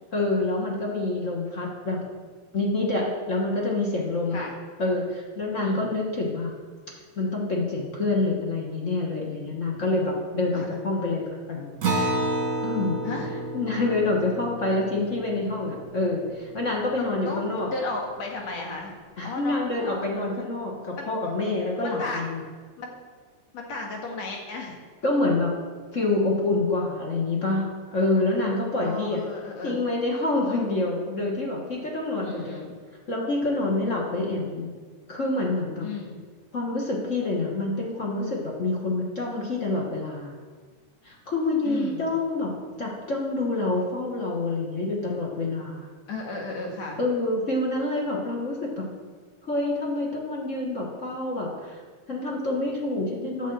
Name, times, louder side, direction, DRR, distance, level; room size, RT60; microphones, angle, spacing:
voice 1, 0.1-2.0 2.5-4.4 4.8-6.5 7.2-11.8 12.6-13.0 13.5-17.7 19.2-22.4 25.0-25.5 25.9-29.2 29.6-32.7 33.1-34.7 35.1-35.9 36.5-40.4 41.0-42.5 42.8-45.9 47.0-48.9 49.4-51.8 52.1-53.5, left 2 dB, 50° left, -2 dB, 0.9 m, -27 dB
Acoustic guitar, 11.8-16.7, right 2 dB, 35° right, 1.5 m, -30 dB
voice 2, 17.0-18.9 19.2-20.0 21.0-21.1 21.8-22.3 22.8-22.9 23.5-24.8 28.8-29.8 32.2-32.7 35.8-36.2 41.6-42.0 46.1-47.0, left 3 dB, 65° left, 0 dB, 2.8 m, -34 dB
11.5 x 5.2 x 7.7 m, 1.5 s
omnidirectional pair, 3.4 m